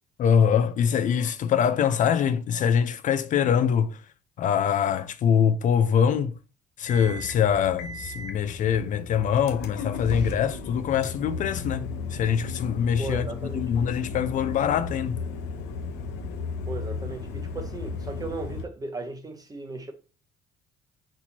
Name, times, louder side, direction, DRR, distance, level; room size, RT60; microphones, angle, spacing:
voice 1, 0.2-4.0 4.4-6.3 6.8-13.3 13.5-15.2, left 8 dB, 50° left, 0.4 m, -24 dB
sound 1, 6.9-18.6, left 4 dB, 85° left, 0.8 m, -34 dB
voice 2, 13.0-13.7 16.7-19.9, right 3 dB, 20° right, 0.9 m, -36 dB
4.3 x 4.3 x 2.8 m
cardioid pair, 110°, 17 cm